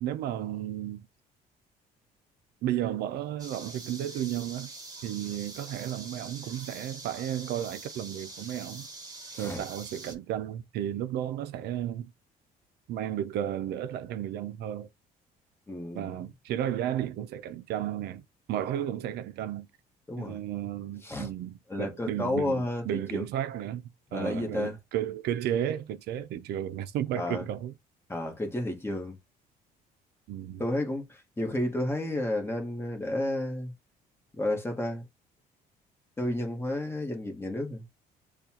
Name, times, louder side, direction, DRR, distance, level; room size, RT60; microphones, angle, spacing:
voice 1, 0.0-1.1 2.6-4.7 5.0-8.9 9.4-12.1 12.9-14.9 15.9-18.2 18.5-19.7 20.2-23.8 24.1-27.7 30.3-30.6, right 11 dB, 75° right, 0.5 m, -33 dB
sound 1, 3.4-10.2, right 2 dB, 20° right, 1.3 m, -44 dB
voice 2, 15.7-16.1 20.1-20.4 21.0-21.3 21.7-23.2 24.1-24.8 27.1-27.4 28.1-29.2 30.6-33.7 34.4-35.0 36.2-37.8, left 1 dB, 15° left, 1.3 m, -31 dB
6.7 x 2.4 x 2.9 m
cardioid pair, 110°, 17 cm